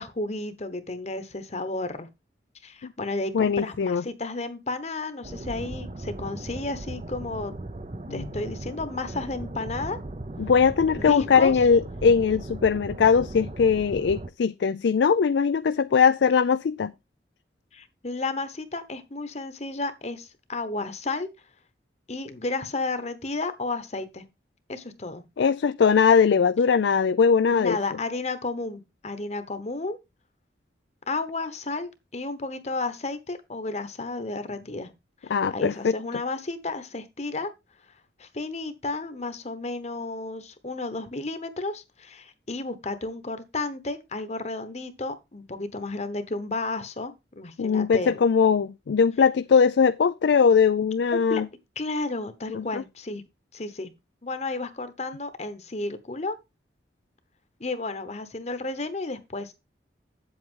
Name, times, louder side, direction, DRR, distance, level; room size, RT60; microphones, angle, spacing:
voice 1, 0.0-2.1 2.6-7.5 8.1-10.0 11.0-11.6 17.7-21.3 22.1-24.2 24.7-25.2 27.5-30.0 31.1-34.9 35.2-37.5 38.2-48.2 51.1-51.4 51.8-53.2 53.5-53.9 54.2-56.4 57.6-59.5, left 2 dB, 40° left, 1.0 m, -32 dB
voice 2, 3.3-4.0 8.1-8.2 10.4-16.9 25.4-27.8 35.3-36.0 47.6-51.5 52.5-52.8, left 6 dB, 80° left, 0.4 m, -21 dB
sound 1, 5.2-14.3, right 2 dB, 35° right, 0.6 m, -37 dB
8.3 x 7.9 x 3.7 m
head